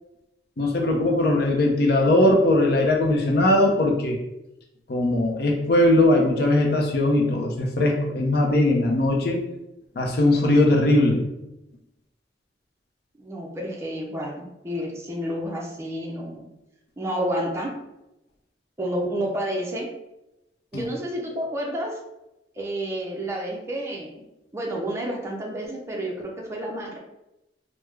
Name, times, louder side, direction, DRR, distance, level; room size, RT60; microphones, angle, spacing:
voice 1, 0.6-4.2 4.9-9.4 10.0-11.2 20.7-20.8, left 1 dB, 60° left, 1 dB, 0.5 m, -20 dB
voice 2, 13.2-16.5 17.0-17.7 18.8-19.9 20.7-22.0 22.6-24.2 24.5-27.0, right 1 dB, 15° right, -1 dB, 0.5 m, -30 dB
3.4 x 2.0 x 3.1 m, 0.90 s
head